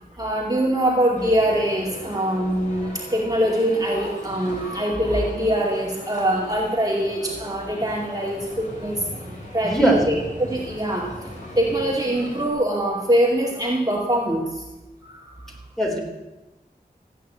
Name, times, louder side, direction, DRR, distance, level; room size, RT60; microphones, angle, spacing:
voice 1, 0.2-9.0 9.5-11.1 11.6-14.6 15.0-15.4, right 1 dB, 20° right, -3 dB, 2.5 m, -23 dB
Male speech man speaking, 1.1-12.5, left 1 dB, 45° left, 5.3 m, -39 dB
voice 2, 9.6-10.1 15.8-16.0, right 1 dB, ahead, -1 dB, 3.6 m, -19 dB
15.0 x 9.2 x 8.4 m, 1.0 s
wide cardioid pair, 70°, 17 cm